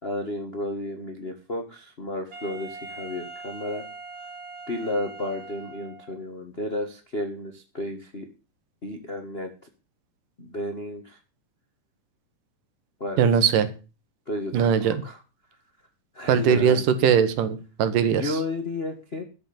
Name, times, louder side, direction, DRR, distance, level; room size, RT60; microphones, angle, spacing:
voice 1, 0.0-3.9 4.7-8.3 8.8-9.5 10.4-11.2 13.0-13.3 14.3-15.2 16.1-16.8 18.2-19.2, left 1 dB, 65° left, 4 dB, 0.6 m, -32 dB
Wind instrument woodwind instrument, 2.3-6.2, right 3 dB, 30° right, 2.0 m, -41 dB
voice 2, 13.2-13.7 14.5-15.0 16.3-18.4, right 7 dB, 70° right, 12 dB, 2.7 m, -20 dB
13.0 x 6.2 x 8.7 m, 0.34 s
omnidirectional pair, 4.1 m